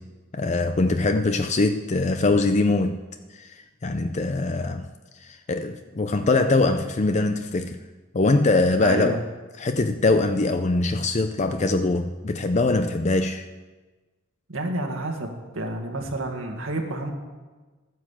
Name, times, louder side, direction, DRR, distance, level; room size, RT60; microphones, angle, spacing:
voice 1, 0.3-3.0 3.3-4.9 5.2-7.8 8.1-9.2 9.6-13.5, left 2 dB, 35° left, 0.5 m, -22 dB
voice 2, 8.8-9.2 14.5-17.1, right 1 dB, 80° right, 1.9 m, -29 dB
13.0 x 9.4 x 7.3 m
head